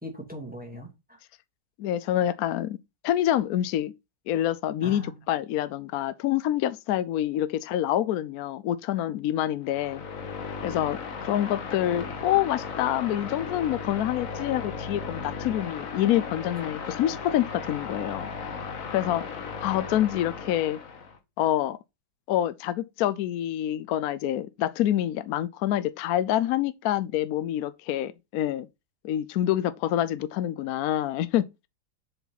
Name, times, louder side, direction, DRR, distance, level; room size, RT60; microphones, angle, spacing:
voice 1, 0.0-1.2 4.8-5.2 16.5-16.8, equal, 5° right, 2.4 m, -41 dB
voice 2, 1.8-2.8 3.0-3.9 4.3-10.0 10.6-18.5 18.9-19.2 19.6-20.8 21.4-21.8 22.3-28.7 29.0-31.7, left 12 dB, 70° left, 1.0 m, -27 dB
sound 1, 9.6-21.2, left 5 dB, 55° left, 1.5 m, -36 dB
7.1 x 5.4 x 4.0 m
omnidirectional pair, 1.8 m